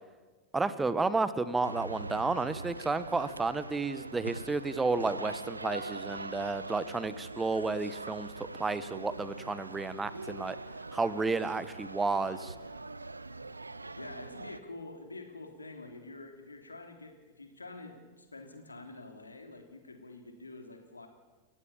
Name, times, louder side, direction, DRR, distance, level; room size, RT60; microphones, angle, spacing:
voice 1, 0.5-10.6 10.9-12.5, right 3 dB, 10° right, 15 dB, 1.2 m, -32 dB
sound 1, 1.6-14.6, right 3 dB, 80° right, 0.7 m, -43 dB
voice 2, 14.0-21.1, left 2 dB, 80° left, 5 dB, 3.2 m, -47 dB
29.5 x 15.0 x 7.2 m, 1.3 s
figure-of-eight pair, 90°, 0 cm